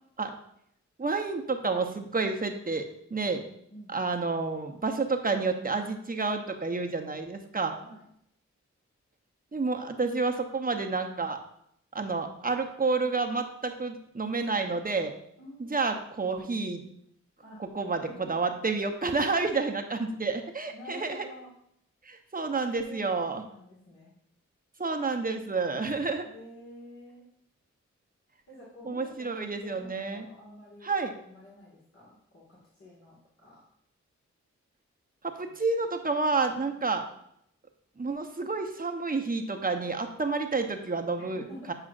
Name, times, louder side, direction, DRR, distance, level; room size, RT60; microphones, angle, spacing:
voice 1, 1.0-3.4 3.9-7.8 9.5-11.4 11.9-15.1 15.6-16.8 17.6-21.3 22.1-23.4 24.8-26.3 28.9-30.3 30.8-31.1 35.2-37.0 38.0-41.7, right 4 dB, 30° right, 5 dB, 0.8 m, -30 dB
voice 2, 15.4-15.9 17.4-18.3 20.7-21.5 22.6-24.1 26.2-27.3 28.5-30.9 31.2-33.6 35.4-35.6 41.1-41.7, equal, 50° left, -6 dB, 1.9 m, -49 dB
7.7 x 4.9 x 2.5 m, 0.73 s
cardioid pair, 45°, 29 cm